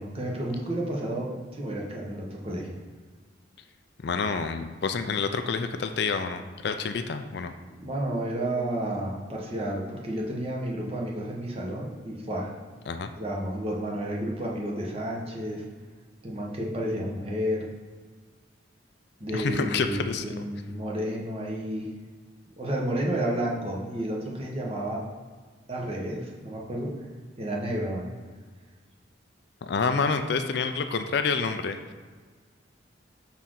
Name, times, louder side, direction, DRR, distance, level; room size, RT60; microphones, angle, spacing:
voice 1, 0.0-2.8 7.7-12.6 13.2-15.6 16.2-17.7 19.2-21.9 22.6-25.0 25.7-27.0 27.4-28.1, right 1 dB, 30° right, -2 dB, 1.0 m, -31 dB
voice 2, 4.0-7.5 12.9-13.1 19.3-20.4 29.6-31.8, left 5 dB, 60° left, 8 dB, 0.4 m, -28 dB
6.0 x 4.3 x 3.8 m, 1.5 s
head